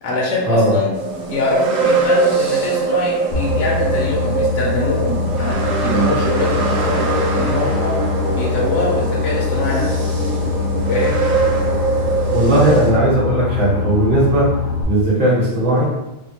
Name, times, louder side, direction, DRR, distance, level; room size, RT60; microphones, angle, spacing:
voice 1, 0.0-0.9 1.3-5.6 5.8-7.1 7.4-7.9 8.3-10.0 10.9-11.2, left 2 dB, 80° left, -3 dB, 1.0 m, -23 dB
sound 1, 0.9-12.9, right 4 dB, 65° right, 0.4 m, -22 dB
Boat Water vehicle, 3.3-14.8, left 5 dB, 60° left, 0.6 m, -22 dB
voice 2, 12.3-14.5 14.8-15.8, right 1 dB, 30° right, -7 dB, 0.9 m, -16 dB
2.7 x 2.2 x 2.8 m, 0.94 s
omnidirectional pair, 1.3 m